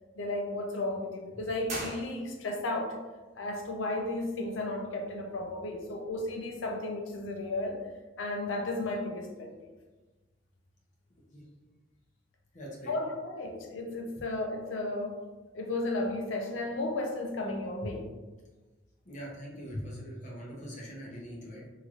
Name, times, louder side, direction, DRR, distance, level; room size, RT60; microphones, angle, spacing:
voice 1, 0.1-3.0 3.4-7.8 8.2-9.5 12.8-15.2 15.5-18.2, left 2 dB, 85° left, 2 dB, 0.5 m, -34 dB
sound 1, 1.6-2.7, right 2 dB, 40° right, 0.9 m, -40 dB
voice 2, 12.5-13.0 14.2-14.3 19.0-21.7, equal, 40° left, -4 dB, 0.8 m, -42 dB
3.0 x 2.8 x 2.4 m, 1.2 s
head